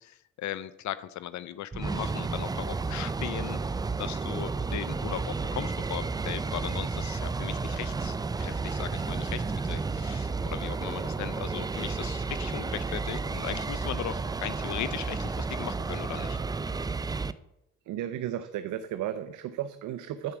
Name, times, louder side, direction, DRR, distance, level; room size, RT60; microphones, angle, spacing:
voice 1, 0.0-3.6 4.0-16.4, left 12 dB, 70° left, 15 dB, 0.6 m, -38 dB
sound 1, 1.7-17.3, right 4 dB, 15° right, 0.3 m, -32 dB
voice 2, 17.8-20.4, right 11 dB, 80° right, 10 dB, 0.6 m, -34 dB
10.5 x 4.7 x 7.1 m, 0.87 s
cardioid pair, 90°, 30 cm